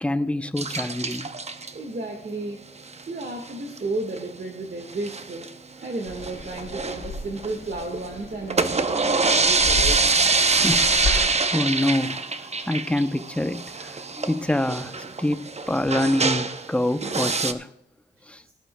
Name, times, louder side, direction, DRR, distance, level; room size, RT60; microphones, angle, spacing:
voice 1, 0.0-1.3 10.5-12.3 12.7-17.7 18.3-18.4, left 1 dB, 5° left, 0.7 m, -26 dB
sound 1, 0.6-1.7 2.9-3.2 3.5-3.6 3.8-3.9 4.2-4.3 4.9-5.5 5.9-7.8 8.3-16.7 17.0-17.5, right 4 dB, 35° right, 0.7 m, -24 dB
voice 2, 1.7-2.6 3.1-5.4 5.8-10.0, right 2 dB, 50° right, 1.6 m, -33 dB
sound 2, 6.1-11.4, left 3 dB, 80° left, 2.2 m, -33 dB
18.0 x 14.0 x 2.3 m
cardioid pair, 70°, 19 cm